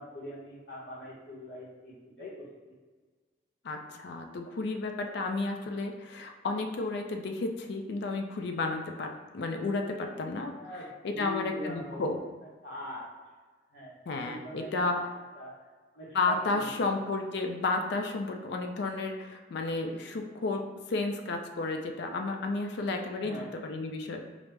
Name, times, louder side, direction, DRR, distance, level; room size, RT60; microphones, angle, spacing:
voice 1, 0.0-2.7 9.9-10.1 10.5-12.1 12.6-13.0 13.7-14.0 14.2-15.0 15.3-15.5 15.9-17.0 23.1-23.5, left 1 dB, 85° left, -8 dB, 0.9 m, -42 dB
voice 2, 3.6-9.1 9.3-10.5 11.0-12.2 14.1-15.0 16.1-20.6 20.9-24.2, left 3 dB, 65° left, 4 dB, 0.4 m, -32 dB
4.9 x 2.0 x 3.2 m, 1.4 s
head